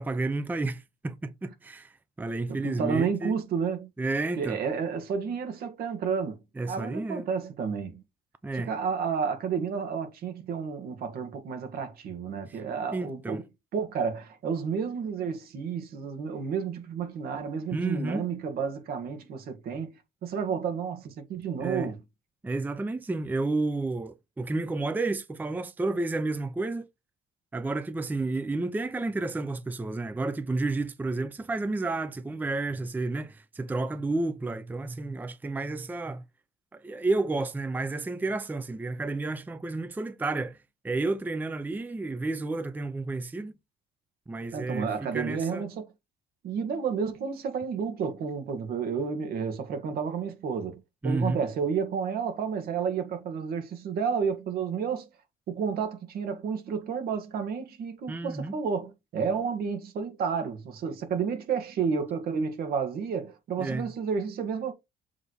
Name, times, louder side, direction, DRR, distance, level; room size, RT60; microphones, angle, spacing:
voice 1, 0.0-3.3 4.0-4.6 6.6-7.2 8.4-8.7 12.5-12.6 12.9-13.4 17.7-18.2 21.6-21.9 22.4-26.9 27.5-36.2 36.7-40.6 40.8-43.6 44.3-45.6 51.0-51.4 58.1-58.5 63.6-63.9, right 2 dB, 10° right, 0.5 m, -31 dB
voice 2, 2.5-3.9 4.4-6.4 6.7-8.0 8.5-13.4 13.7-19.9 20.2-22.0 44.5-45.9 46.4-55.1 55.5-64.7, right 6 dB, 65° right, 1.8 m, -31 dB
7.2 x 3.3 x 4.2 m
cardioid pair, 110°, 17 cm